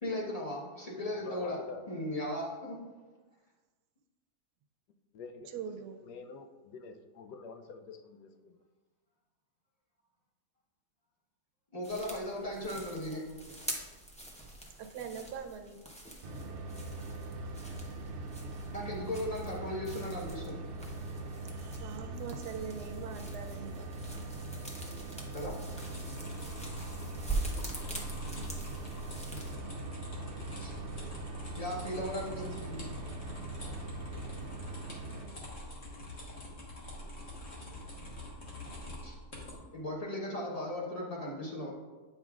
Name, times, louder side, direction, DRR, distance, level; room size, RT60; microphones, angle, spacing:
voice 1, 0.0-1.6 1.9-2.8 11.7-13.4 18.7-20.6 25.3-25.6 30.6-30.7 31.6-33.0 39.0-39.2 39.7-41.7, left 1 dB, 25° left, -4 dB, 1.0 m, -37 dB
voice 2, 1.1-1.8 5.1-5.6 6.1-8.5, left 4 dB, 85° left, 8 dB, 1.2 m, -47 dB
voice 3, 5.5-6.0 14.7-15.8 21.4-23.9, right 6 dB, 85° right, 5 dB, 1.2 m, -42 dB
sound 1, 11.8-29.6, right 2 dB, 10° left, 0.4 m, -44 dB
sound 2, 16.2-35.3, right 2 dB, 60° right, 0.8 m, -42 dB
sound 3, 25.8-39.6, left 1 dB, 45° left, 1.6 m, -45 dB
8.6 x 5.6 x 2.4 m, 1.3 s
omnidirectional pair, 1.7 m